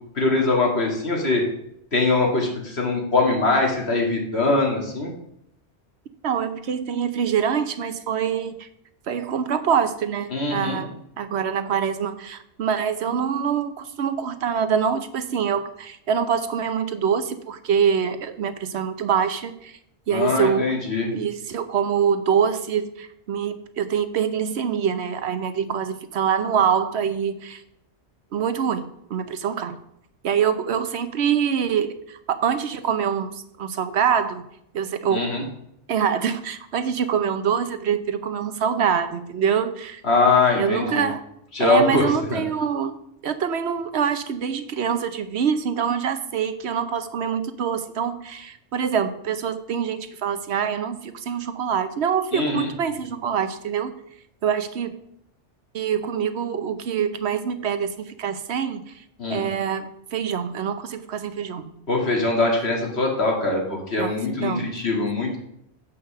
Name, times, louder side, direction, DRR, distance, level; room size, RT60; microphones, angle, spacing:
voice 1, 0.2-1.4 1.9-5.1 10.3-10.8 20.1-21.1 35.1-35.4 40.0-41.1 41.5-42.4 52.3-52.7 59.2-59.4 61.9-65.4, left 3 dB, 70° left, -1 dB, 2.4 m, -22 dB
voice 2, 6.2-8.7 9.1-19.8 20.1-20.7 21.1-27.6 28.3-29.8 30.2-34.4 34.7-35.3 35.9-40.0 40.5-41.2 41.6-43.0 43.2-53.9 54.4-54.9 55.7-59.0 59.3-61.7 64.0-64.1 64.4-64.7, right 7 dB, 75° right, 10 dB, 1.0 m, -25 dB
8.0 x 5.5 x 6.6 m, 0.77 s
omnidirectional pair, 1.1 m